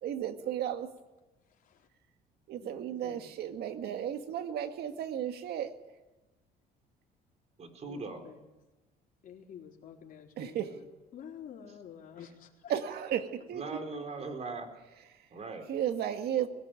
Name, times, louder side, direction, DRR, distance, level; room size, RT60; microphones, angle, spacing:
voice 1, 0.0-0.9 2.5-5.8 10.4-10.7 12.7-13.6 15.1-15.2 15.7-16.5, right 10 dB, 70° right, 7 dB, 2.0 m, -34 dB
voice 2, 1.4-1.9 2.6-3.3 7.8-8.5 9.2-10.9 11.1-12.7, left 8 dB, 55° left, 0 dB, 4.2 m, -50 dB
voice 3, 7.6-8.3 13.5-14.7 15.3-15.7, right 3 dB, 40° right, 5 dB, 4.1 m, -39 dB
22.0 x 18.0 x 9.2 m, 1.1 s
cardioid pair, 110°, 17 cm